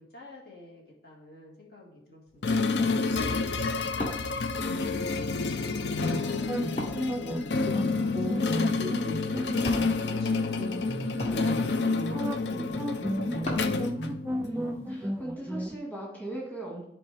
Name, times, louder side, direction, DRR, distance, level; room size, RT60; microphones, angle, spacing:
voice 1, 0.0-6.5 7.3-9.7 10.0-10.5 10.9-13.7 14.6-15.3, left 1 dB, 60° left, -2 dB, 2.1 m, -47 dB
Wood, 2.3-13.8, left 1 dB, 40° left, 1.6 m, -42 dB
sound 1, 2.4-14.7, left 4 dB, 80° left, 0.6 m, -29 dB
sound 2, 6.0-15.7, equal, 10° right, 0.3 m, -34 dB
voice 2, 14.4-16.8, right 1 dB, 10° left, -4 dB, 2.0 m, -38 dB
13.0 x 4.3 x 3.5 m, 0.72 s
head